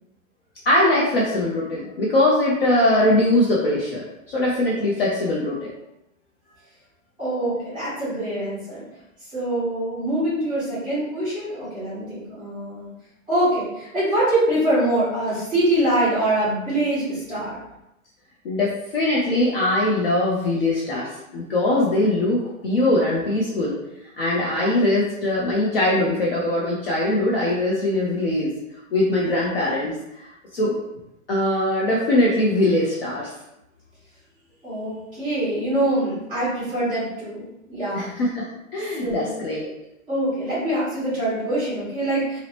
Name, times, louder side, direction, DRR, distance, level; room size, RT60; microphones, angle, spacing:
voice 1, 0.7-5.7 18.4-23.8 24.2-28.5 28.9-30.7 31.3-33.3 37.9-38.4 38.7-39.7, left 1 dB, 45° left, -5 dB, 0.4 m, -21 dB
voice 2, 7.2-8.8 9.3-12.9 13.3-17.6 34.6-38.1 39.0-39.3 40.1-42.4, right 1 dB, 10° right, -12 dB, 1.2 m, -24 dB
2.9 x 2.0 x 2.8 m, 0.88 s
hypercardioid pair, 180°, 41 cm